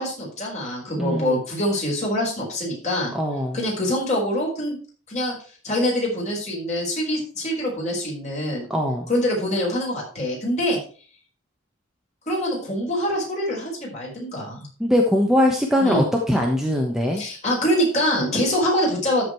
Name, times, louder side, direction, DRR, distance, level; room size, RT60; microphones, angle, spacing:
voice 1, 0.0-3.1 3.5-4.8 5.1-5.3 5.6-8.6 9.1-10.8 12.3-14.7 15.8-16.0 17.1-19.3, equal, 35° left, -3 dB, 5.1 m, -24 dB
voice 2, 1.0-1.4 3.1-3.6 8.7-9.1 14.8-17.2, left 1 dB, ahead, 0 dB, 1.2 m, -21 dB
13.5 x 5.1 x 4.6 m, 0.39 s
head